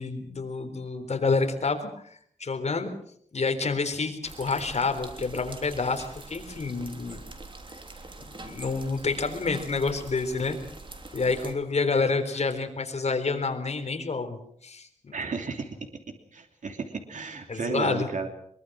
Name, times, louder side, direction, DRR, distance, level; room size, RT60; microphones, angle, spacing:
voice 1, 0.0-1.9 2.4-2.9 3.3-7.2 7.7-7.8 8.2-10.6 11.1-15.1 17.5-18.1, left 4 dB, 60° left, 6 dB, 3.8 m, -28 dB
sound 1, 4.2-11.6, right 2 dB, 40° right, 3.3 m, -44 dB
voice 2, 15.1-15.7 16.3-18.3, right 4 dB, 80° right, 4 dB, 3.0 m, -33 dB
23.5 x 23.0 x 6.2 m, 0.67 s
wide cardioid pair, 105°, 13 cm